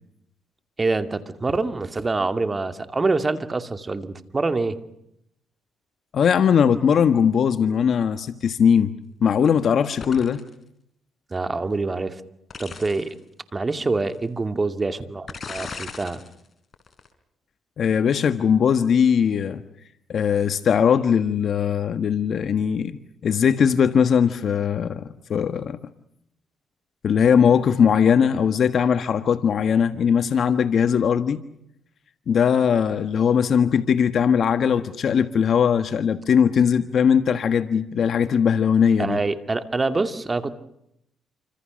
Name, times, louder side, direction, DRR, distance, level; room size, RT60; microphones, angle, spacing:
voice 1, 0.8-4.8 11.3-12.2 12.6-13.1 13.5-16.2 39.0-40.5, right 3 dB, 25° right, 9 dB, 2.5 m, -25 dB
voice 2, 6.1-8.9 9.2-10.4 17.8-19.6 20.1-25.8 27.0-31.4 32.3-39.2, left 7 dB, 60° left, 10 dB, 1.4 m, -20 dB
sound 1, 10.0-10.5 12.5-13.1 14.0-14.1 15.3-16.3 16.7-17.1, left 5 dB, 40° left, 4.4 m, -37 dB
28.5 x 26.5 x 6.5 m, 0.76 s
cardioid pair, 90°, 0 cm